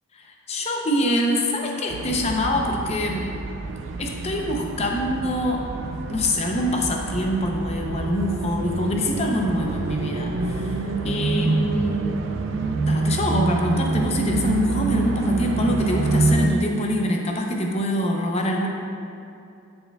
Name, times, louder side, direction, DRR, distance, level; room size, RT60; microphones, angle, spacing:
voice 1, 0.1-3.3 4.0-5.7 6.1-12.0 12.8-18.7, left 1 dB, 30° left, 1 dB, 0.6 m, -25 dB
sound 1, 1.9-16.5, right 3 dB, 60° right, 0.4 m, -26 dB
11.0 x 4.4 x 2.3 m, 2.7 s
head